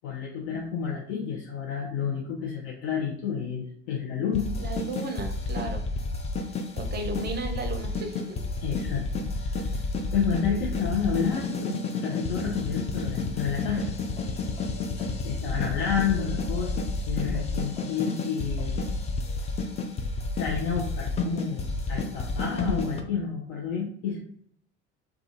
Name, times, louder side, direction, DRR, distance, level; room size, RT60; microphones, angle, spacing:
voice 1, 0.0-4.5 8.6-9.0 9.4-9.7 10.1-11.7 12.0-13.9 15.2-18.8 20.3-24.2, left 7 dB, 60° left, -2 dB, 0.6 m, -30 dB
sound 1, 4.3-23.0, left 3 dB, 20° left, 0.4 m, -30 dB
voice 2, 4.6-5.9 6.8-8.2, right 3 dB, 30° right, 4 dB, 0.5 m, -34 dB
2.3 x 2.3 x 2.7 m, 0.65 s
figure-of-eight pair, 65°, 36 cm